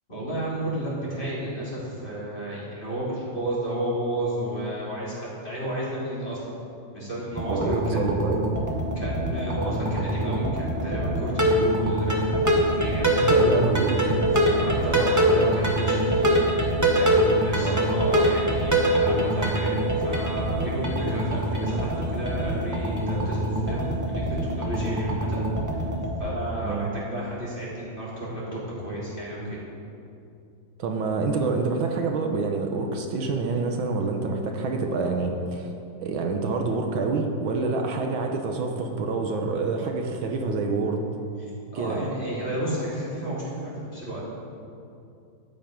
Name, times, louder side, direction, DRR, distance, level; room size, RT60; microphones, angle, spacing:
voice 1, 0.1-6.4 6.9-8.1 9.0-13.1 14.3-16.5 16.8-23.9 24.2-25.9 26.2-29.6 41.7-44.3, right 1 dB, 25° left, -8 dB, 3.8 m, -32 dB
sound 1, 7.3-26.1, right 1 dB, 10° right, 1.1 m, -24 dB
voice 2, 7.5-8.4 13.2-14.2 17.6-17.8 26.6-26.9 30.8-35.7 36.0-41.1 41.7-42.0, right 4 dB, 75° right, 3 dB, 1.7 m, -27 dB
13.0 x 9.2 x 5.2 m, 2.6 s
omnidirectional pair, 2.2 m